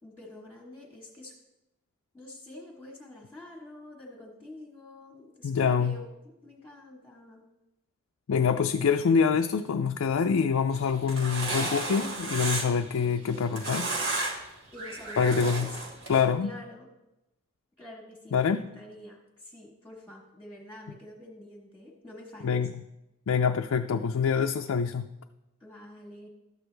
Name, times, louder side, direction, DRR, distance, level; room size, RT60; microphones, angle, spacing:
voice 1, 0.0-1.4 2.1-7.5 14.7-15.8 16.4-16.9 17.8-22.7 25.6-26.3, left 1 dB, 5° left, -3 dB, 1.3 m, -47 dB
voice 2, 5.4-6.0 8.3-13.9 15.2-15.7 16.1-16.5 18.3-18.6 22.4-22.8 23.3-25.1, left 6 dB, 80° left, 5 dB, 0.4 m, -25 dB
sound 1, 10.8-12.9 13.3-14.5 14.8-16.2, right 2 dB, 60° right, 1.7 m, -33 dB
12.5 x 7.9 x 3.3 m, 0.95 s
head